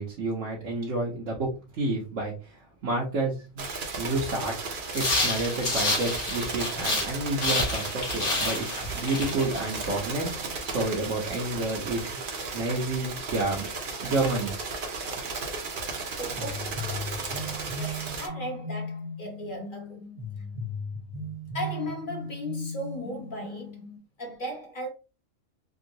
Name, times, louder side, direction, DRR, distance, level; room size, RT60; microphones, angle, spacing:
voice 1, 0.0-3.7 4.0-12.2 12.5-13.7 14.0-14.5, right 2 dB, 70° right, 1.2 m, -30 dB
sound 1, 3.6-18.3, right 4 dB, 50° right, 0.8 m, -35 dB
sound 2, 4.9-7.1 7.4-10.0, left 2 dB, 70° left, 1.7 m, -29 dB
voice 2, 16.1-17.2 17.7-20.0 21.5-23.8 24.2-24.9, equal, 40° left, 1.2 m, -37 dB
sound 3, 16.4-24.0, left 1 dB, 90° right, 1.5 m, -37 dB
3.7 x 2.3 x 2.7 m
omnidirectional pair, 1.4 m